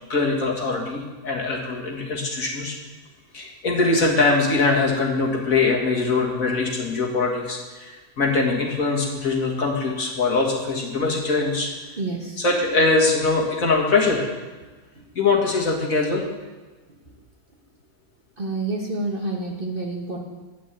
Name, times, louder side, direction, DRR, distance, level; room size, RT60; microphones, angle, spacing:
voice 1, 0.1-2.7 3.3-11.7 12.4-14.3 15.2-16.2, left 3 dB, 55° left, -1 dB, 2.2 m, -22 dB
voice 2, 12.0-12.4 18.4-20.2, right 2 dB, 35° right, 0 dB, 1.3 m, -28 dB
11.0 x 6.7 x 8.2 m, 1.3 s
omnidirectional pair, 1.7 m